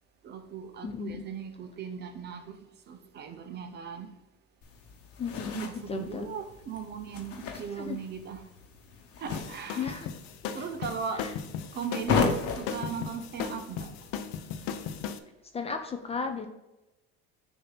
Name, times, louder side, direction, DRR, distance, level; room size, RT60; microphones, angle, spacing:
voice 1, 0.2-2.6 2.9-4.1 5.5-8.5 9.2-10.0 10.5-11.3 11.7-12.3 12.5-13.9, right 6 dB, 35° right, 0.7 m, -38 dB
voice 2, 0.8-1.3 5.2-6.3 7.8-8.0 9.8-10.1 10.4-10.6 11.2-11.3 15.5-16.5, left 5 dB, 20° left, 0.5 m, -35 dB
sound 1, 4.6-15.0, left 5 dB, 50° left, 1.2 m, -36 dB
sound 2, 9.3-15.2, left 7 dB, 70° left, 0.7 m, -37 dB
6.7 x 2.8 x 5.8 m
supercardioid pair, 125°, 30 cm